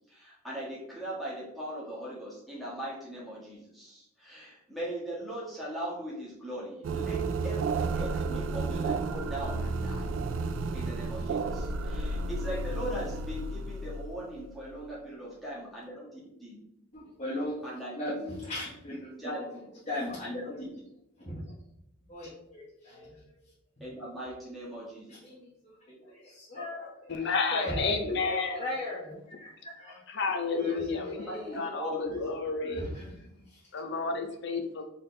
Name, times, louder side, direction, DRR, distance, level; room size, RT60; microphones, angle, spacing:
voice 1, 0.1-10.1 10.7-16.6 17.6-18.4 19.2-19.6 23.8-25.2 28.0-28.4 31.3-32.3 32.6-32.8, right 1 dB, ahead, -8 dB, 1.6 m, -39 dB
sound 1, 6.8-14.8, right 3 dB, 70° right, 0.3 m, -32 dB
voice 2, 16.9-19.3 19.9-20.6 21.2-21.4 22.1-23.4 25.1-27.8 28.6-30.0 30.6-31.7 32.6-33.6, left 1 dB, 35° left, -10 dB, 1.4 m, -38 dB
voice 3, 27.1-28.6 30.1-31.3 31.6-32.9 33.7-34.8, left 4 dB, 55° left, 5 dB, 0.6 m, -31 dB
4.3 x 3.4 x 3.2 m, 0.81 s
head